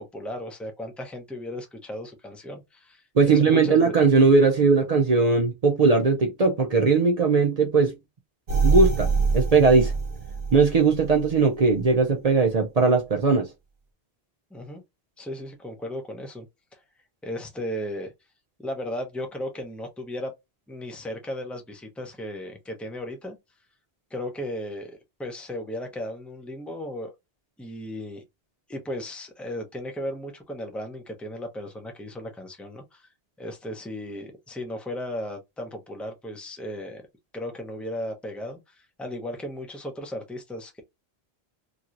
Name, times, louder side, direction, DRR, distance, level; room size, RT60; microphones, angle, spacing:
voice 1, 0.0-4.0 14.5-14.8 15.2-16.5 16.7-16.8 17.2-18.1 18.6-20.3 20.7-23.4 24.1-27.1 27.6-28.2 28.7-33.1 33.4-37.0 37.3-40.8, left 1 dB, ahead, 0.6 m, -35 dB
voice 2, 3.2-8.0 8.6-9.9 10.5-13.5, right 4 dB, 45° right, 0.5 m, -19 dB
sound 1, 8.5-11.3 11.8-11.9, right 4 dB, 70° right, 1.0 m, -25 dB
3.0 x 2.8 x 2.5 m
omnidirectional pair, 1.1 m